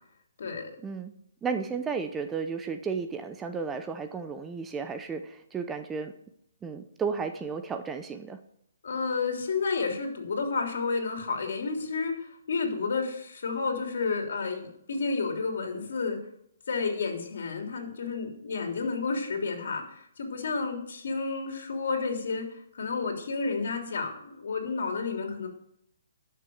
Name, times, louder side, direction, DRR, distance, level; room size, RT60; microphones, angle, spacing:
voice 1, 0.4-0.7 8.8-16.2 16.7-25.5, left 4 dB, 65° left, 3 dB, 3.4 m, -31 dB
voice 2, 1.4-6.1 6.6-8.4, right 5 dB, 10° right, 7 dB, 0.7 m, -33 dB
12.0 x 6.8 x 8.0 m, 0.72 s
hypercardioid pair, 160°, 0 cm